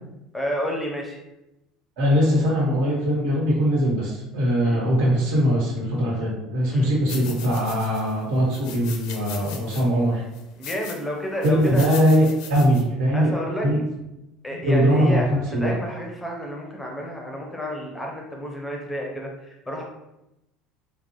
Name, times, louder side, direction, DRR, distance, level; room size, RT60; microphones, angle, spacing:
voice 1, 0.3-1.2 4.6-4.8 6.7-6.9 10.6-12.0 13.1-13.7 14.4-19.8, equal, 5° left, 0 dB, 0.5 m, -31 dB
voice 2, 2.0-10.2 11.4-13.3 13.6-13.8 14.5-15.7, equal, 85° right, -4 dB, 1.4 m, -21 dB
sound 1, 7.1-8.1 8.5-9.8 10.3-11.0 11.4-12.8, left 7 dB, 60° left, 0.4 m, -39 dB
3.9 x 2.0 x 3.0 m, 0.91 s
cardioid pair, 175°, 0 cm